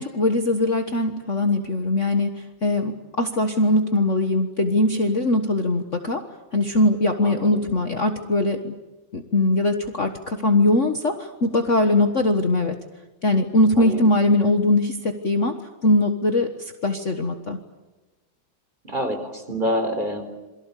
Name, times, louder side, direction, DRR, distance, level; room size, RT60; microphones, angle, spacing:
voice 1, 0.0-6.3 6.5-8.7 9.1-12.8 13.2-17.6, left 2 dB, 40° left, 6 dB, 1.6 m, -21 dB
voice 2, 7.2-7.6 13.8-14.0 18.8-20.2, equal, 20° right, 6 dB, 4.1 m, -27 dB
28.0 x 23.0 x 8.4 m, 1.1 s
omnidirectional pair, 2.2 m